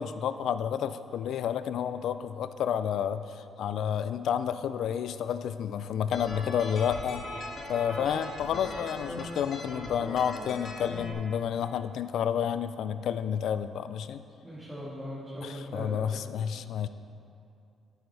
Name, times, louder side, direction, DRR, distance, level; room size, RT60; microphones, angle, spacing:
voice 1, 0.0-7.2 7.7-14.2 15.4-16.9, left 8 dB, 75° left, 12 dB, 0.3 m, -30 dB
sound 1, 6.1-11.1, left 1 dB, 50° left, 1.4 m, -39 dB
voice 2, 14.4-16.2 16.8-16.9, equal, 10° right, -10 dB, 2.1 m, -39 dB
9.6 x 8.2 x 3.4 m, 2.6 s
cardioid pair, 90°, 0 cm